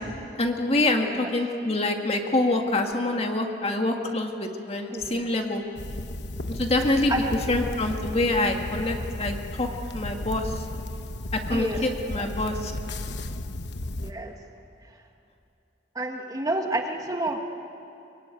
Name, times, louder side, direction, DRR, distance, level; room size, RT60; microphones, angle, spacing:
voice 1, 0.4-5.6 6.5-7.1 7.5-9.7 9.9-10.6 11.3-12.7, left 2 dB, 35° left, 3 dB, 2.0 m, -26 dB
voice 2, 0.9-1.3 4.9-5.3 6.8-7.3 11.5-11.8 12.2-12.6 14.0-14.3 15.9-17.4, right 1 dB, 20° right, 3 dB, 1.6 m, -30 dB
sound 1, 5.8-14.1, left 1 dB, 70° left, 1.1 m, -34 dB
24.5 x 24.0 x 9.3 m, 2.7 s
head